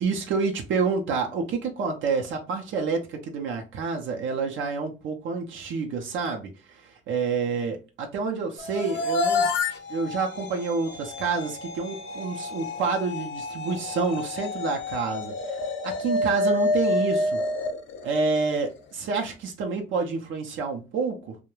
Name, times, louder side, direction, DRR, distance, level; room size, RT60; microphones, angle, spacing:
voice 1, 0.0-9.5 9.9-17.4 18.0-21.4, right 4 dB, 75° right, 0.5 m, -28 dB
sound 1, 8.6-18.8, left 2 dB, 70° left, 0.6 m, -29 dB
2.3 x 2.1 x 3.0 m
cardioid pair, 90°, 20 cm